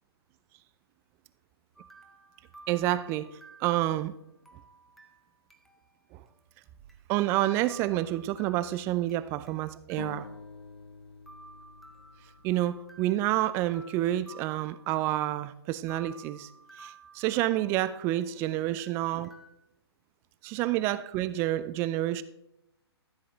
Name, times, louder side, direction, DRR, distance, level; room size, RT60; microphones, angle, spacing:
sound 1, 1.8-6.0 6.3-6.4 6.9-7.0 7.6-9.6 9.9-10.9 11.3-15.5 15.9-18.4 18.8-19.5, right 3 dB, ahead, 0.8 m, -54 dB
voice 1, 2.7-4.1 6.1-6.2 7.1-10.3 12.4-16.5 16.8-19.3 20.4-22.2, right 14 dB, 20° right, 0.3 m, -29 dB
sound 2, 10.0-13.6, left 4 dB, 75° left, 0.6 m, -47 dB
13.5 x 7.7 x 3.1 m
figure-of-eight pair, 125°, 14 cm